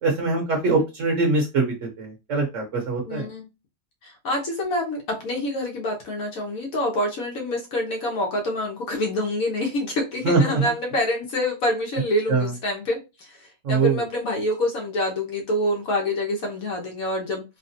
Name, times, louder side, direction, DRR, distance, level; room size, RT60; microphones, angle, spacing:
voice 1, 0.0-3.3 10.2-10.6 12.3-12.5 13.6-14.0, right 3 dB, 65° right, 1.2 m, -23 dB
voice 2, 3.0-3.5 4.0-13.3 13.7-17.4, left 1 dB, 75° left, 1.4 m, -26 dB
3.8 x 2.2 x 2.6 m
omnidirectional pair, 1.5 m